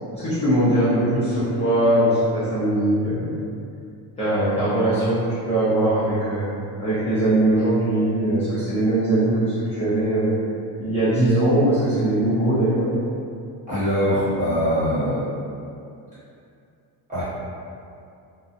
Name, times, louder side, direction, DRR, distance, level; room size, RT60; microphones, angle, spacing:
voice 1, 0.1-3.4 4.2-6.5 6.8-10.3 10.8-12.9, right 1 dB, 15° left, -13 dB, 0.4 m, -21 dB
voice 2, 13.7-15.3 17.1-17.2, equal, 15° right, -13 dB, 1.0 m, -22 dB
2.7 x 2.1 x 2.4 m, 2.5 s
cardioid pair, 170°, 43 cm